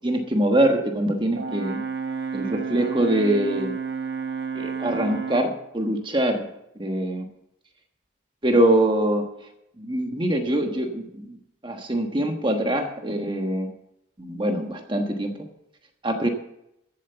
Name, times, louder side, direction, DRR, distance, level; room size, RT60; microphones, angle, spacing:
voice 1, 0.0-1.8 2.3-3.7 4.5-6.5 6.7-7.3 8.4-9.3 9.8-11.4 11.6-13.7 14.2-15.3 16.0-16.3, right 1 dB, 25° right, 4 dB, 1.3 m, -23 dB
Brass instrument, 1.3-5.6, right 5 dB, 55° right, 1.2 m, -31 dB
15.0 x 7.6 x 6.9 m, 0.82 s
head